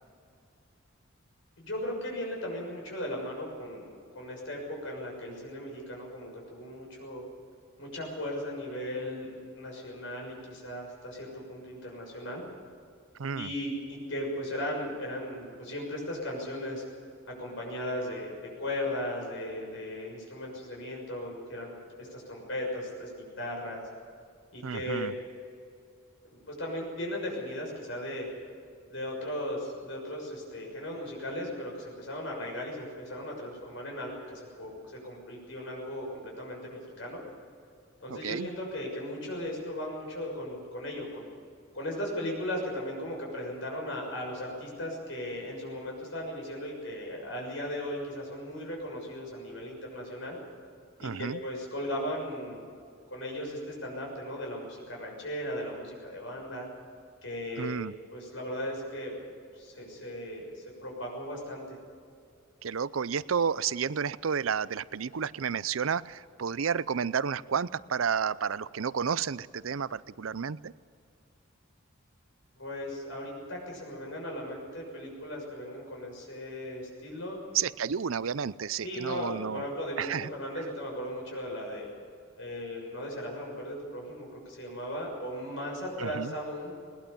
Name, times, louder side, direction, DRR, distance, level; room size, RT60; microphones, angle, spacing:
voice 1, 1.6-7.2 7.8-12.4 13.3-16.8 17.3-23.8 24.5-25.1 26.5-28.3 28.9-37.2 38.0-41.3 41.7-50.4 51.0-52.6 53.1-56.7 57.2-57.8 58.1-59.1 59.5-61.6 72.6-77.4 78.8-81.9 82.4-86.7, left 1 dB, 70° left, -1 dB, 6.5 m, -37 dB
voice 2, 13.2-13.5 24.6-25.1 38.1-38.5 51.0-51.4 57.6-57.9 62.6-70.7 77.5-79.6 80.0-80.3 86.0-86.3, right 7 dB, 85° right, 18 dB, 0.6 m, -31 dB
20.5 x 20.0 x 7.1 m, 2.4 s
head